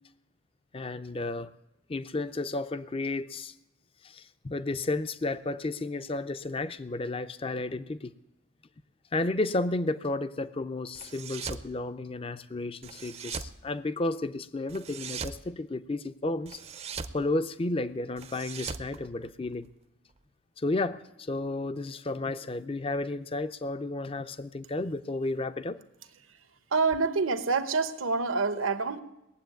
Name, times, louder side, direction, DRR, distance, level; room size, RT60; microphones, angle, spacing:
voice 1, 0.7-1.5 1.9-3.5 4.0-8.1 9.1-16.6 17.1-19.7 20.6-25.8, left 2 dB, 25° left, 13 dB, 0.5 m, -32 dB
sound 1, 10.9-11.7 12.8-13.6 14.7-15.4 16.5-17.2 18.2-19.7, right 5 dB, 30° right, 0.5 m, -39 dB
voice 2, 26.7-29.0, right 4 dB, 80° right, 10 dB, 1.0 m, -27 dB
18.5 x 7.8 x 9.1 m, 0.90 s
head